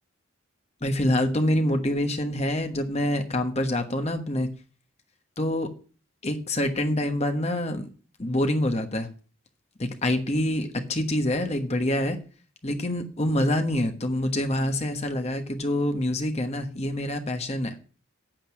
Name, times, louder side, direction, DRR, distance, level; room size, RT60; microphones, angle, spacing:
voice 1, 0.8-4.5 5.4-5.7 6.2-7.9 8.2-9.1 9.8-12.2 12.6-17.7, left 1 dB, 30° left, 6 dB, 1.2 m, -26 dB
9.1 x 8.3 x 6.0 m, 0.38 s
head